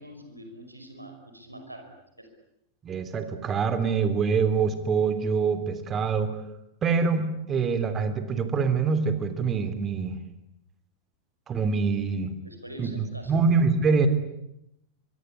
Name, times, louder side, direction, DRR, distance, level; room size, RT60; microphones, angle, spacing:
voice 1, 0.0-1.9 2.2-2.3 12.4-13.4, right 1 dB, 85° right, 5 dB, 5.5 m, -44 dB
voice 2, 2.8-6.4 6.8-10.2 11.5-12.3 12.8-12.9 13.3-14.1, right 5 dB, 25° right, 10 dB, 3.2 m, -25 dB
24.0 x 23.5 x 9.7 m, 0.83 s
figure-of-eight pair, 90°, 0 cm